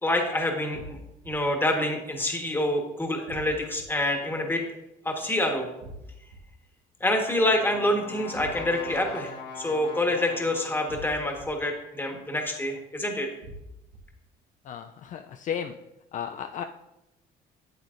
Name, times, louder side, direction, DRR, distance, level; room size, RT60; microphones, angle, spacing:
voice 1, 0.0-1.0 1.2-4.6 5.0-5.7 7.0-13.3, left 1 dB, 10° left, 2 dB, 1.4 m, -27 dB
sound 1, 0.7-1.3 3.3-3.9 5.8-6.4 8.3-8.9 10.9-11.5 13.4-14.0, right 1 dB, 90° right, 1.5 m, -43 dB
Brass instrument, 7.1-11.2, left 4 dB, 85° left, 1.0 m, -42 dB
voice 2, 14.7-15.7 16.1-16.6, left 8 dB, 50° left, 6 dB, 0.4 m, -34 dB
8.1 x 8.0 x 2.6 m, 0.90 s
cardioid pair, 110°, 17 cm